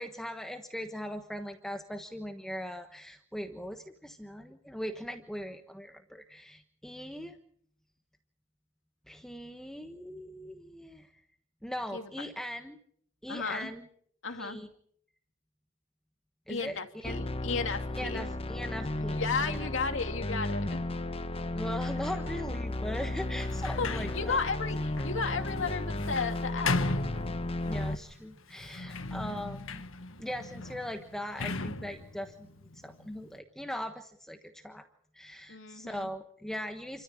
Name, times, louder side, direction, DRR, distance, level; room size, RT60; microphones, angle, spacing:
voice 1, 0.0-7.4 9.1-11.1 11.6-12.8 13.2-13.9 14.4-14.7 16.5-17.2 18.0-19.7 21.5-24.4 27.7-29.8 30.2-32.5 32.7-34.9 35.1-37.0, equal, 5° left, 5 dB, 1.3 m, -40 dB
voice 2, 13.3-13.7 14.2-14.6 16.5-18.3 19.1-20.8 23.8-26.8 35.5-36.1, left 4 dB, 65° left, 6 dB, 2.6 m, -34 dB
sound 1, 17.0-27.9, left 1 dB, 30° left, 1.1 m, -34 dB
Sliding door, 23.4-27.9 28.5-33.4, left 3 dB, 90° left, 1.6 m, -37 dB
29.5 x 14.0 x 8.8 m, 0.66 s
head